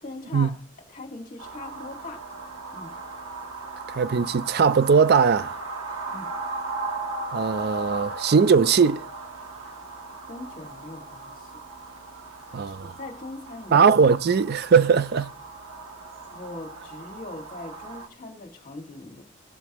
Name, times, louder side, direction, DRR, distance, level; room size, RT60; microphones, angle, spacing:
voice 1, 0.0-0.5 0.9-2.3 2.7-3.0 6.1-6.3 10.3-11.6 12.6-13.9 16.3-19.2, left 2 dB, 40° left, 2.0 m, -40 dB
sound 1, 1.4-18.1, right 3 dB, 80° right, 1.3 m, -37 dB
voice 2, 3.9-5.6 7.3-9.0 12.5-12.9 13.7-15.3, right 6 dB, 50° right, 0.4 m, -20 dB
18.0 x 6.9 x 3.0 m
head